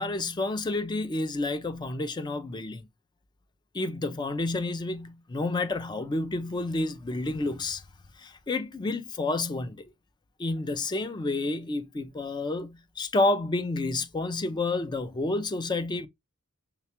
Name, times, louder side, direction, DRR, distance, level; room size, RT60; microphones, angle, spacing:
voice 1, 0.0-2.9 3.7-7.8 8.2-9.9 10.4-16.1, left 2 dB, 20° left, 0.3 m, -30 dB
5.7 x 2.2 x 2.8 m
head